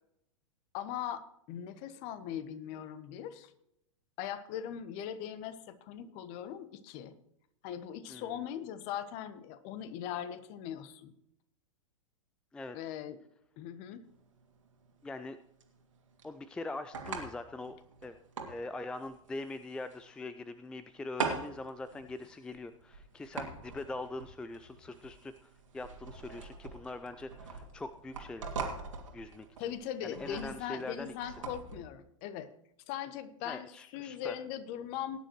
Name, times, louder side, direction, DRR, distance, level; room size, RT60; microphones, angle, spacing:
voice 1, 0.7-3.5 4.2-7.1 7.6-11.1 12.7-13.2 13.6-14.0 29.6-32.5 32.9-35.2, left 10 dB, 40° left, 13 dB, 1.1 m, -40 dB
sound 1, 14.0-31.8, right 4 dB, 70° right, 2.6 m, -43 dB
voice 2, 15.0-15.4 16.2-17.7 18.0-18.2 18.5-28.6 29.1-29.5 30.0-31.3 33.4-34.4, left 2 dB, 5° left, 12 dB, 0.4 m, -42 dB
19.5 x 10.0 x 3.1 m, 0.77 s
figure-of-eight pair, 100°, 17 cm